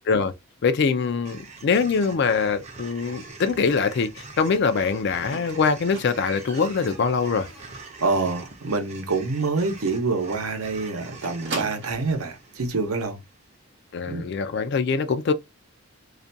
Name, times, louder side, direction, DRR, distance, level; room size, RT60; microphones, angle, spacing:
voice 1, 0.6-7.5 13.9-15.3, left 5 dB, 50° left, 0.3 m, -23 dB
sound 1, 1.2-13.6, right 3 dB, 30° right, 0.5 m, -44 dB
Squeak, 5.3-8.1 8.4-8.8 9.1-9.2 9.6-9.7 9.9-10.1 10.3-12.2 13.0-13.1, right 3 dB, 55° right, 0.8 m, -39 dB
voice 2, 8.0-13.2 14.1-14.2, right 3 dB, 85° right, 0.7 m, -26 dB
2.4 x 2.2 x 2.5 m
head